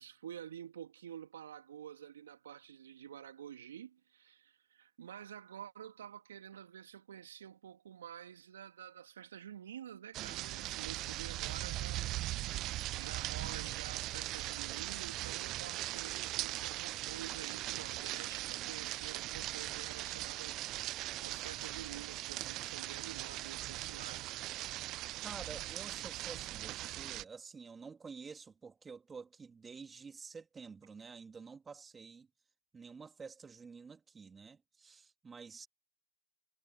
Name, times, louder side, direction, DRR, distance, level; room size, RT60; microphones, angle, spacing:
voice 1, 0.0-12.4 13.0-24.4, right 9 dB, 70° right, 3.3 m, -49 dB
sound 1, 10.1-27.2, right 16 dB, 30° right, 0.3 m, -40 dB
voice 2, 25.2-32.3 32.7-35.7, right 5 dB, 15° right, 3.2 m, -50 dB
hypercardioid pair, 120°, 0 cm